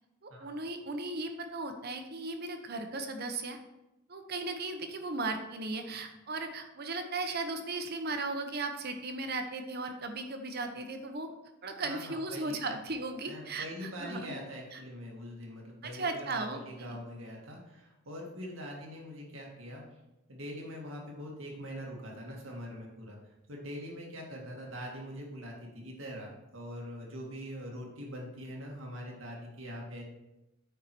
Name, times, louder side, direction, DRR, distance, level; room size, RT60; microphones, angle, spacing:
voice 1, 0.2-3.6 4.1-11.3 11.6-14.3 14.7-14.8 15.8-17.0, right 3 dB, 55° right, 6 dB, 0.9 m, -36 dB
voice 2, 11.8-12.7 13.3-19.8 20.3-23.2 23.5-30.0, equal, 90° right, -1 dB, 2.0 m, -43 dB
8.9 x 4.8 x 4.5 m, 0.95 s
head